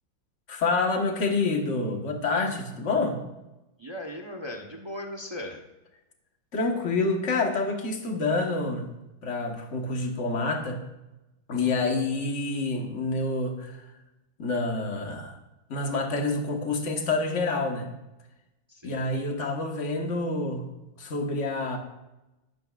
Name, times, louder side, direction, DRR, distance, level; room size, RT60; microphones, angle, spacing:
voice 1, 0.5-3.2 6.5-8.9 9.2-10.8 11.5-13.8 14.4-15.4 15.7-17.9 18.8-20.7 21.0-21.8, left 3 dB, 40° left, 2 dB, 1.5 m, -27 dB
voice 2, 3.8-5.6 11.5-11.8 18.7-19.0, left 1 dB, 30° right, 2 dB, 0.4 m, -38 dB
12.0 x 12.0 x 2.5 m, 0.97 s
omnidirectional pair, 2.3 m